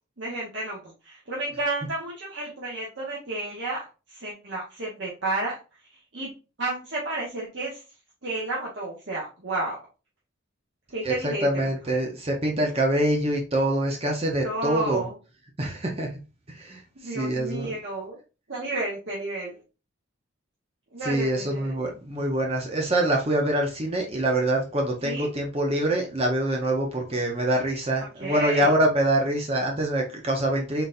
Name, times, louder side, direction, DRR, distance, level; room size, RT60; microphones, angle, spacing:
voice 1, 0.2-6.3 6.6-7.8 8.2-9.8 10.9-11.7 14.4-15.2 17.0-18.2 18.5-19.6 20.9-21.7 25.0-25.3 28.1-28.7, right 2 dB, 60° right, -5 dB, 1.1 m, -32 dB
voice 2, 11.0-15.0 15.6-16.1 16.5-16.8 17.1-17.7 21.0-30.8, right 1 dB, 30° right, 1 dB, 0.7 m, -25 dB
4.0 x 3.9 x 2.5 m, 0.31 s
head